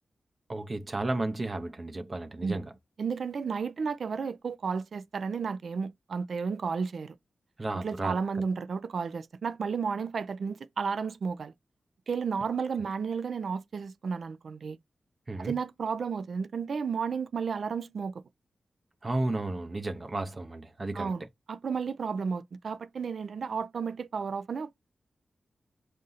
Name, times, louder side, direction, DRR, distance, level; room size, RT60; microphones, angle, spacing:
voice 1, 0.5-2.7 7.6-8.2 15.3-15.5 19.0-21.1, right 2 dB, 35° right, 0.7 m, -33 dB
voice 2, 3.0-7.2 7.7-11.5 12.1-14.8 15.4-18.1 20.9-24.7, right 5 dB, 65° right, 0.4 m, -32 dB
3.7 x 2.7 x 4.0 m
wide cardioid pair, 110°, 0 cm